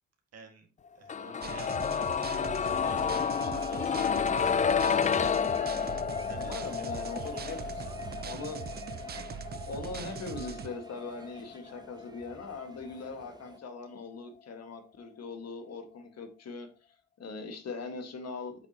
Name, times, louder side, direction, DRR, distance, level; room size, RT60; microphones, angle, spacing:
voice 1, 0.3-0.7 1.0-3.9 6.2-8.2, right 5 dB, 55° right, 2 dB, 2.0 m, -51 dB
sound 1, 1.1-12.9 13.2-13.3, left 7 dB, 25° left, 0.3 m, -31 dB
sound 2, 1.4-10.7, right 8 dB, 35° right, 0.5 m, -42 dB
sound 3, 2.8-13.6, right 2 dB, 15° right, 1.0 m, -50 dB
voice 2, 6.3-7.2 7.4-7.6 8.2-8.7 9.7-16.7 17.2-18.7, left 4 dB, 55° left, 6 dB, 1.8 m, -40 dB
8.2 x 6.4 x 2.9 m, 0.34 s
cardioid pair, 90°, 30 cm